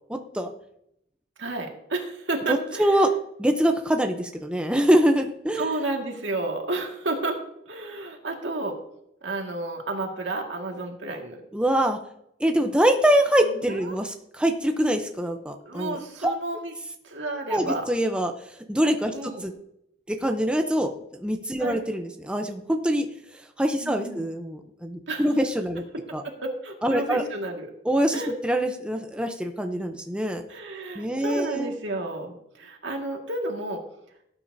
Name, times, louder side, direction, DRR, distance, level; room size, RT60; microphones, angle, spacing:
voice 1, 0.1-0.5 2.5-3.1 3.4-5.7 11.5-12.0 12.4-16.0 16.2-16.3 17.5-18.3 18.7-19.5 20.1-20.9 21.2-23.1 23.6-25.8 26.1-26.2 26.8-27.2 27.8-30.4 30.9-31.7, right 1 dB, 5° right, 4 dB, 0.7 m, -24 dB
voice 2, 1.4-3.0 5.6-8.8 9.2-11.4 13.4-14.0 15.6-16.7 17.0-17.9 19.1-19.5 21.6-21.8 23.8-24.2 25.1-25.3 26.1-27.7 28.1-28.3 30.5-33.8, right 2 dB, 80° right, 2 dB, 1.9 m, -31 dB
17.5 x 8.9 x 2.7 m, 0.77 s
head